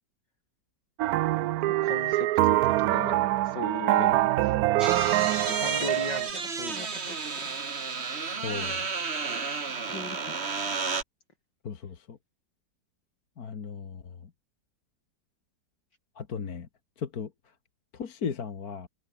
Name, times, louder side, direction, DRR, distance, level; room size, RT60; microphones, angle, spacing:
sound 1, 1.0-6.3, right 15 dB, 70° right, 0.9 m, -24 dB
voice 1, 1.8-4.1 4.4-4.5 5.5-7.4 8.3-8.8 9.9-10.4, left 2 dB, 80° left, 7.6 m, -38 dB
sound 2, 4.8-11.0, right 4 dB, 35° right, 2.0 m, -32 dB
voice 2, 8.4-8.9 11.6-12.2 13.4-14.3 16.2-16.7 17.0-17.3 17.9-18.9, left 6 dB, 55° left, 2.1 m, -36 dB
omnidirectional pair, 1.9 m